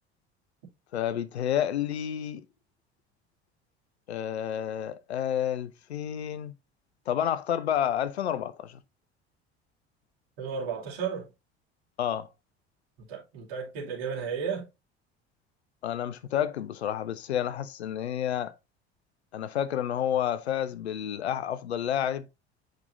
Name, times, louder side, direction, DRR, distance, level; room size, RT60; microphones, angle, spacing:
voice 1, 0.9-2.4 4.1-6.5 7.1-8.8 12.0-12.3 15.8-18.5 19.3-22.3, left 10 dB, 75° left, 0.6 m, -30 dB
voice 2, 10.4-11.3 13.0-14.7, right 6 dB, 65° right, 2.6 m, -33 dB
8.2 x 5.1 x 2.6 m
figure-of-eight pair, 60°, 32 cm